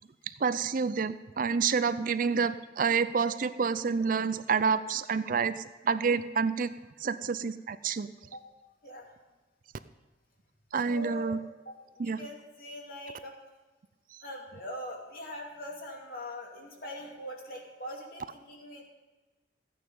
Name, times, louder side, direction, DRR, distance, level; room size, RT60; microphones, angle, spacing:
voice 1, 0.4-6.7 7.0-8.1 10.7-11.4 12.0-12.2, right 5 dB, 50° right, 13 dB, 0.5 m, -28 dB
voice 2, 10.8-11.4 11.7-13.3 14.2-18.8, left 1 dB, 55° left, 0 dB, 2.5 m, -42 dB
14.0 x 9.3 x 5.5 m, 1.3 s
head